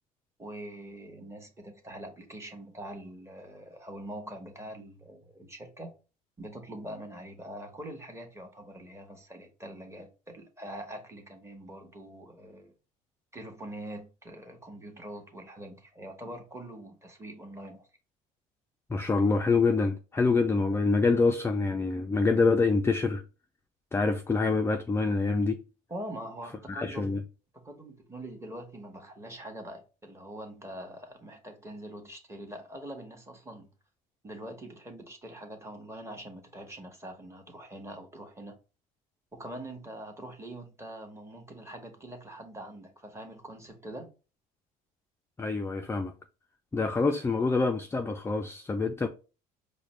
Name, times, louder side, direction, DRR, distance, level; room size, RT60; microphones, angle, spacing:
voice 1, 0.4-5.9 6.4-12.7 13.3-17.9 25.9-27.2 27.5-33.7 34.2-38.5 39.3-44.1, right 1 dB, 15° right, 1.1 m, -43 dB
voice 2, 18.9-23.2 23.9-25.6 26.7-27.2 45.4-46.1 46.7-49.1, left 4 dB, 15° left, 0.3 m, -26 dB
4.9 x 2.1 x 3.1 m
supercardioid pair, 75°, 18 cm